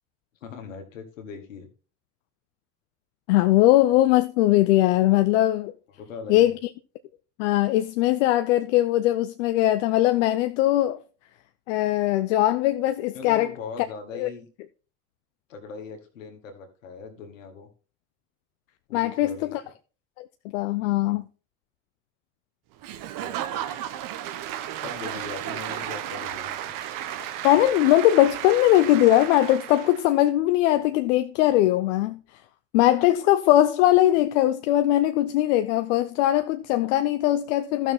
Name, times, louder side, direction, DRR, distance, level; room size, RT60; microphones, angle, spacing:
voice 1, 0.4-1.7 6.0-6.6 13.1-14.5 15.5-17.7 18.9-19.6 20.8-21.2 23.2-23.8 24.8-26.7, left 5 dB, 90° left, 1.9 m, -40 dB
voice 2, 3.3-5.7 6.3-6.6 7.4-11.0 11.7-13.5 14.2-14.3 18.9-19.6 20.2-20.3 20.5-21.2 27.4-32.2 32.7-37.9, left 14 dB, 75° left, 0.7 m, -20 dB
Applause / Crowd, 22.8-30.1, right 11 dB, 55° right, 1.1 m, -34 dB
13.0 x 6.3 x 3.6 m
hypercardioid pair, 75°, 38 cm